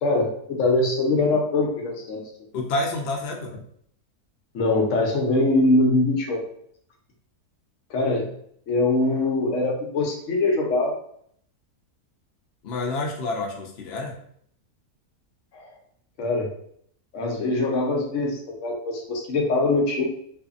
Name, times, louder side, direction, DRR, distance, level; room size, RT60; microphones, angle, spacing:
voice 1, 0.0-2.2 4.5-6.4 7.9-8.3 8.7-10.9 15.5-15.7 16.2-16.5 17.1-20.1, left 2 dB, 65° left, 0 dB, 0.9 m, -22 dB
voice 2, 2.5-3.5 12.6-14.1, left 2 dB, 80° left, 0 dB, 0.5 m, -28 dB
2.6 x 2.6 x 2.4 m, 0.65 s
omnidirectional pair, 1.7 m